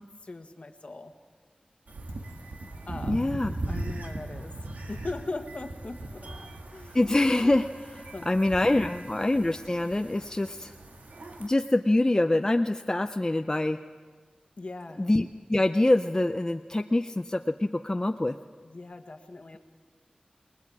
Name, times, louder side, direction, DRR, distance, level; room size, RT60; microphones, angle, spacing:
voice 1, 0.2-1.1 2.8-3.4 3.7-6.4 6.7-7.0 8.1-8.7 14.6-15.0 18.6-19.6, left 2 dB, 50° left, 7 dB, 1.4 m, -40 dB
sound 1, 1.9-11.5, right 2 dB, 80° right, 1.9 m, -39 dB
voice 2, 3.1-3.5 6.9-10.7 11.4-13.8 15.0-18.3, left 1 dB, 25° left, 7 dB, 0.5 m, -25 dB
28.5 x 20.5 x 4.8 m, 1.5 s
wide cardioid pair, 80°, 3 cm